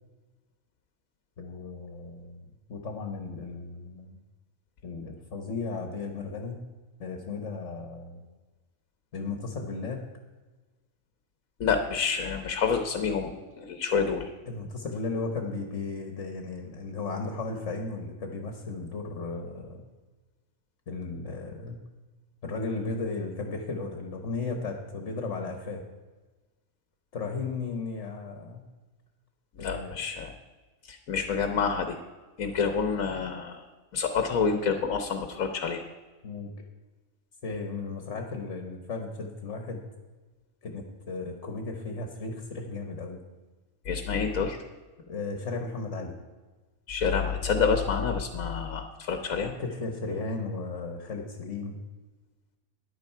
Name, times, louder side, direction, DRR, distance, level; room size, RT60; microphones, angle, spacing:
voice 1, 1.4-4.1 4.8-6.6 7.0-8.2 9.1-10.1 14.5-19.8 20.9-21.8 22.4-25.8 27.1-28.6 29.6-30.0 36.2-36.5 37.4-39.8 40.6-43.2 45.1-46.1 49.6-51.7, left 3 dB, 60° left, 4 dB, 1.5 m, -35 dB
voice 2, 11.6-13.3 13.6-14.3 29.6-30.3 30.9-32.0 32.4-33.6 33.9-35.8 43.9-44.6 46.9-49.5, left 5 dB, 80° left, 6 dB, 1.4 m, -28 dB
14.5 x 10.5 x 4.5 m, 1.3 s
omnidirectional pair, 1.4 m